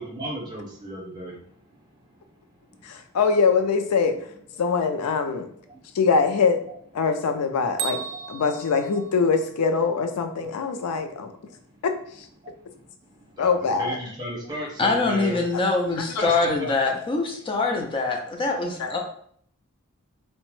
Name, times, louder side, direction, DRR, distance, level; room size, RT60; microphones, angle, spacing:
voice 1, 0.0-1.8 2.1-2.3 2.7-3.0 5.7-5.9 10.7-10.8 11.5-11.8 12.4-13.5 13.8-15.4 16.2-17.0, equal, 20° right, -4 dB, 1.0 m, -36 dB
voice 2, 2.8-4.3 4.6-5.5 5.9-6.6 6.9-8.0 8.3-11.3 11.8-12.3 13.4-14.0 16.0-16.5 18.8-19.0, left 5 dB, 85° left, 7 dB, 0.4 m, -23 dB
Bell, 7.8-9.8, right 8 dB, 85° right, 0.4 m, -35 dB
voice 3, 14.8-19.0, left 3 dB, 25° left, 1 dB, 0.5 m, -24 dB
2.8 x 2.1 x 3.1 m, 0.63 s
head